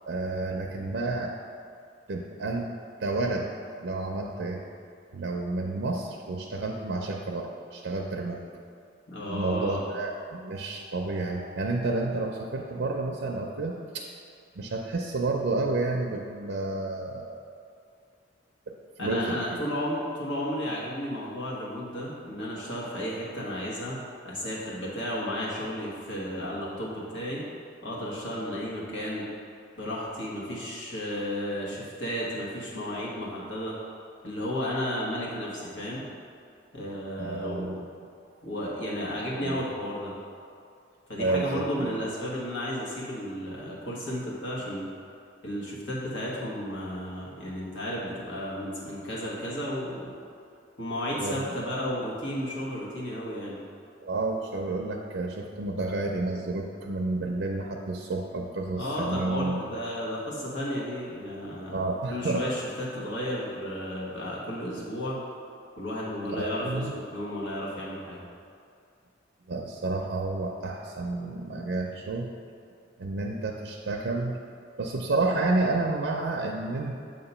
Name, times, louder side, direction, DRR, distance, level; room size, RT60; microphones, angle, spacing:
voice 1, 0.1-1.3 2.1-2.7 3.0-3.5 3.8-4.6 5.1-8.4 9.3-14.1 14.6-17.4 18.7-19.6 37.2-38.1 39.3-39.6 41.2-42.0 51.2-51.5 54.0-59.6 61.7-62.4 66.3-66.9 69.5-72.3 73.0-74.4 74.8-77.0, right 2 dB, 70° right, 1 dB, 0.5 m, -30 dB
voice 2, 9.1-9.8 19.0-24.0 24.2-27.4 27.8-29.3 29.8-33.7 34.2-36.0 36.7-37.8 38.4-40.1 41.1-44.9 45.4-50.2 50.8-53.6 58.8-61.8 62.1-65.2 65.8-68.2, equal, 75° left, -6 dB, 1.5 m, -33 dB
7.4 x 2.9 x 5.5 m, 2.4 s
head